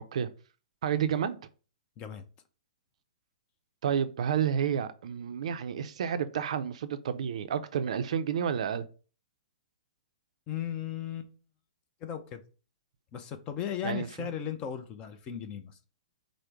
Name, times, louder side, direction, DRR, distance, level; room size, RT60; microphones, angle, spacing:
voice 1, 0.8-1.4 3.8-8.9 13.8-14.3, right 8 dB, 65° right, 0.5 m, -30 dB
voice 2, 10.5-11.3 12.0-12.4 13.1-15.8, left 9 dB, 25° left, 0.5 m, -36 dB
5.0 x 2.1 x 4.5 m
hypercardioid pair, 150°, 4 cm